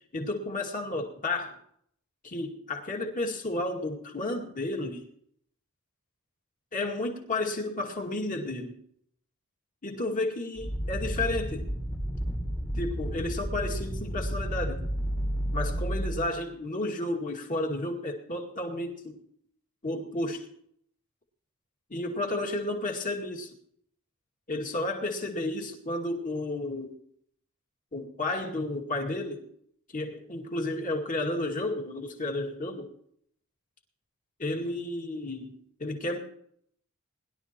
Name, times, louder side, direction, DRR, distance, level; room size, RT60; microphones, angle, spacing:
voice 1, 0.1-1.6 2.2-5.0 6.7-8.8 9.8-11.7 12.8-14.9 15.5-19.2 19.8-20.5 21.9-23.5 24.5-26.9 27.9-29.5 29.9-32.9 34.4-36.2, left 2 dB, 35° left, 2 dB, 2.3 m, -32 dB
sound 1, 10.6-16.3, equal, 5° left, 1.5 m, -31 dB
21.0 x 12.0 x 3.0 m, 0.67 s
head